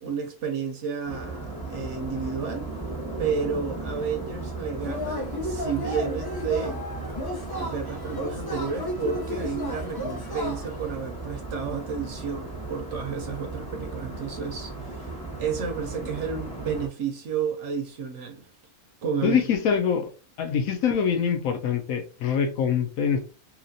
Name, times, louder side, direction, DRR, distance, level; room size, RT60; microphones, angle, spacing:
voice 1, 0.0-2.7 3.2-6.8 7.6-15.1 15.4-18.5 19.0-19.5, right 6 dB, 65° right, 0.8 m, -31 dB
sound 1, 1.0-16.9, right 3 dB, 5° left, 0.9 m, -36 dB
Yell / Cheering, 4.8-10.9, left 1 dB, 30° left, 0.4 m, -34 dB
voice 2, 19.2-20.1 20.4-23.2, left 7 dB, 75° left, 1.0 m, -24 dB
2.9 x 2.8 x 2.6 m
omnidirectional pair, 1.5 m